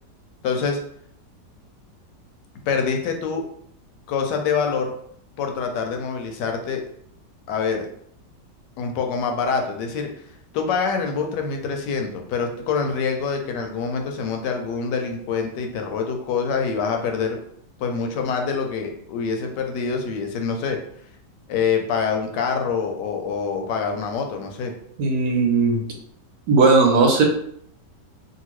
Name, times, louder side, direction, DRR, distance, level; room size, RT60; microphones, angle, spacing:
voice 1, 0.4-0.8 2.7-3.4 4.1-4.9 5.4-6.8 7.5-7.9 8.8-10.1 10.5-17.4 17.8-20.8 21.5-24.7, left 5 dB, 80° left, 4 dB, 1.2 m, -25 dB
voice 2, 25.0-25.8 26.5-27.2, right 3 dB, 70° right, 1 dB, 1.1 m, -17 dB
2.8 x 2.6 x 3.0 m, 0.66 s
omnidirectional pair, 1.9 m